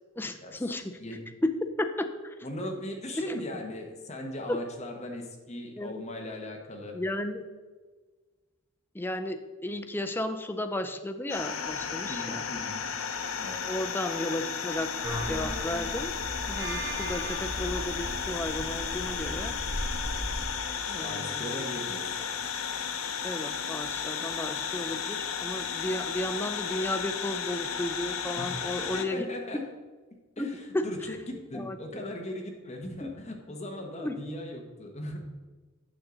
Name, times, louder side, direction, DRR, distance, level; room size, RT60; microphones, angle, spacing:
voice 1, 0.2-1.0 1.4-1.5 1.8-2.3 3.2-3.4 4.5-4.6 5.8-6.0 6.9-7.4 8.9-12.4 13.7-14.9 15.2-16.1 16.5-19.6 20.9-21.7 23.2-29.2 30.4-30.5 30.7-31.2 31.5-32.1 33.0-33.1 34.0-34.2, left 1 dB, 10° left, 7 dB, 0.5 m, -33 dB
voice 2, 2.4-7.0 12.1-12.8 13.4-13.7 21.0-22.2 28.3-29.7 30.4-35.2, left 1 dB, 35° left, 2 dB, 1.2 m, -38 dB
sound 1, 11.3-29.0, left 7 dB, 85° left, 0.7 m, -34 dB
sound 2, 15.0-20.5, equal, 15° right, 1.3 m, -36 dB
8.8 x 6.4 x 3.9 m, 1.3 s
head